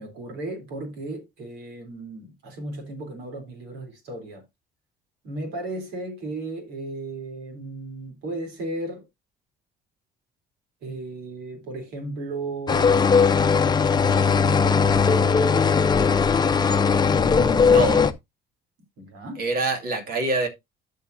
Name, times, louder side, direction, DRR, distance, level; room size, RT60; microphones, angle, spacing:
voice 1, 0.0-4.4 5.2-9.0 10.8-13.1 14.0-15.4 19.0-19.5, right 2 dB, 85° right, 3.6 m, -35 dB
sound 1, 12.7-18.1, left 5 dB, 25° left, 0.7 m, -19 dB
voice 2, 17.3-18.1 19.4-20.5, right 3 dB, 60° right, 2.7 m, -26 dB
12.5 x 5.6 x 2.7 m
cardioid pair, 110°, 17 cm